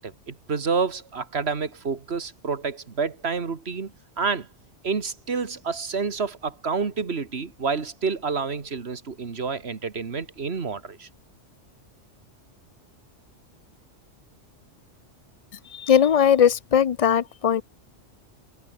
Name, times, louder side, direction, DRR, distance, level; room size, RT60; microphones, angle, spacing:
voice 1, 0.0-4.5 4.8-11.1, right 5 dB, 55° right, 2.0 m, -29 dB
voice 2, 15.7-17.6, left 8 dB, 60° left, 0.3 m, -19 dB
omnidirectional pair, 1.3 m